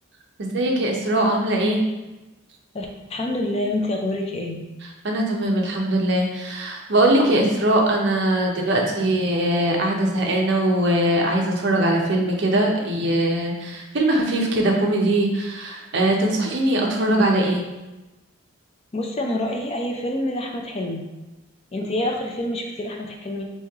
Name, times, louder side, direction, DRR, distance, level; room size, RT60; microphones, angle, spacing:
voice 1, 0.4-1.8 5.0-17.6, right 1 dB, 55° right, 0 dB, 0.6 m, -21 dB
voice 2, 2.7-4.6 18.9-21.0 21.7-23.5, left 1 dB, 30° left, 1 dB, 0.4 m, -27 dB
3.1 x 2.8 x 3.5 m, 1.1 s
head